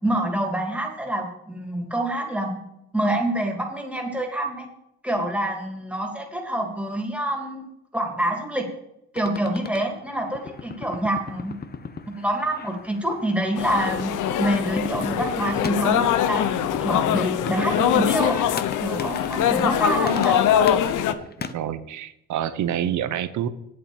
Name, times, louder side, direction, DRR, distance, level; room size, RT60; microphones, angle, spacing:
voice 1, 0.0-2.6 2.9-4.7 5.0-8.7 9.1-11.5 12.1-18.4 18.8-20.4, right 1 dB, 5° right, 1 dB, 2.7 m, -26 dB
sound 1, 9.2-21.5, left 5 dB, 30° left, 0.8 m, -38 dB
sound 2, 13.6-21.1, left 10 dB, 80° left, 0.8 m, -23 dB
voice 2, 21.4-23.5, right 10 dB, 70° right, 13 dB, 0.9 m, -27 dB
8.6 x 7.7 x 7.2 m, 0.81 s
cardioid pair, 90°, 30 cm